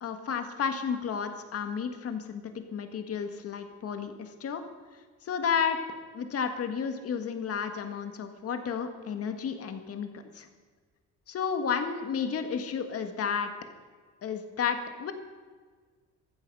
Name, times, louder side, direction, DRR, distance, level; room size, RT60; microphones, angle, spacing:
voice 1, 0.0-4.6 5.2-5.8 6.1-10.5 11.3-13.5 14.2-15.1, left 6 dB, 50° left, 7 dB, 1.7 m, -32 dB
15.0 x 14.0 x 5.5 m, 1.5 s
cardioid pair, 135°, 30 cm